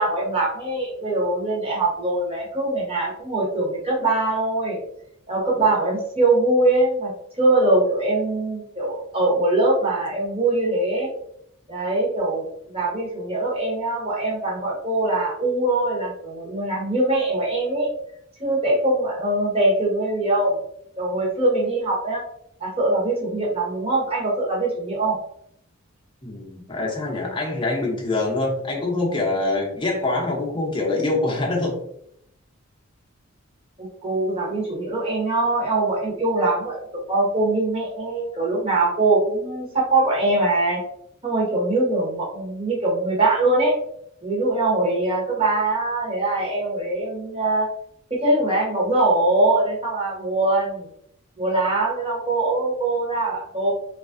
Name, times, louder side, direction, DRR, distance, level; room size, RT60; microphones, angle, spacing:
voice 1, 0.0-4.8 5.3-7.1 7.4-11.1 11.7-17.9 18.4-20.6 21.0-22.2 22.6-25.2 33.8-40.8 41.2-43.7 44.2-47.7 48.1-50.9 51.4-53.7, right 2 dB, 25° right, -4 dB, 0.9 m, -22 dB
voice 2, 26.2-31.7, left 2 dB, 20° left, -2 dB, 0.6 m, -24 dB
3.1 x 2.4 x 2.4 m, 0.73 s
head